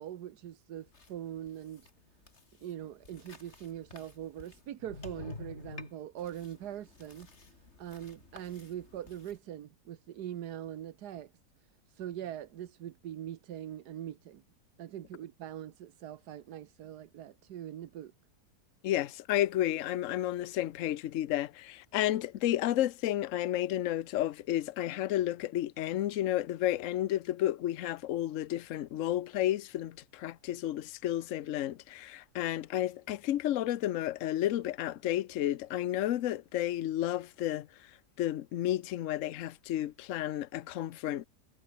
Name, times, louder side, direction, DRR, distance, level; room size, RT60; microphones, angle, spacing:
voice 1, 0.0-1.9 2.6-11.3 11.9-14.4 14.8-18.1, right 11 dB, 85° right, 1.5 m, -42 dB
sound 1, 0.8-9.4, left 3 dB, 45° left, 3.0 m, -50 dB
voice 2, 18.8-37.7 38.2-41.3, left 13 dB, 60° left, 1.0 m, -32 dB
omnidirectional pair, 1.7 m